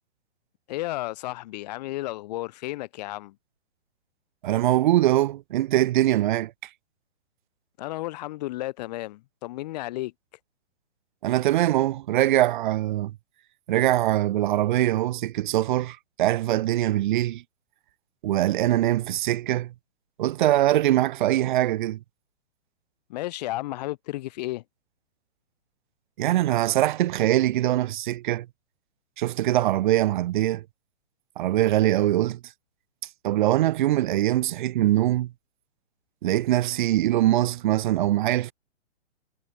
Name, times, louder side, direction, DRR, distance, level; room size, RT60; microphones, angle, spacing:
voice 1, 0.7-3.3 7.8-10.1 23.1-24.6, left 17 dB, 35° left, 3.5 m, -33 dB
voice 2, 4.4-6.5 11.2-13.1 13.7-17.4 18.2-19.7 20.2-22.0 26.2-28.5 29.2-30.6 31.4-32.4 33.2-35.3 36.2-38.5, right 14 dB, 40° right, 4.5 m, -22 dB
hypercardioid pair, 160°, 36 cm